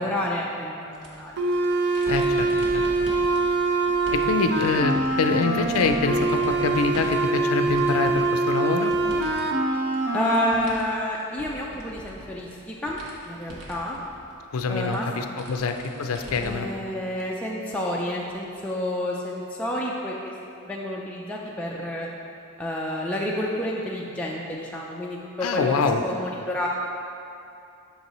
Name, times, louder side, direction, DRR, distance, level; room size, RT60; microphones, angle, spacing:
voice 1, 0.0-1.3 10.1-13.0 13.3-14.0 14.7-15.1 15.5-15.6 16.4-20.3 20.7-22.1 22.6-25.7 26.0-26.7, left 1 dB, 5° left, -4 dB, 0.4 m, -29 dB
sound 1, 0.9-9.4 9.7-16.7 17.1-17.2 18.4-18.5, equal, 85° right, 1.2 m, -42 dB
sound 2, 1.4-10.6, right 3 dB, 55° right, 0.6 m, -24 dB
voice 2, 2.1-2.5 2.7-3.1 4.1-8.9 14.5-16.7 25.4-26.0, left 4 dB, 70° left, 6 dB, 0.4 m, -25 dB
8.1 x 6.5 x 3.0 m, 2.6 s
head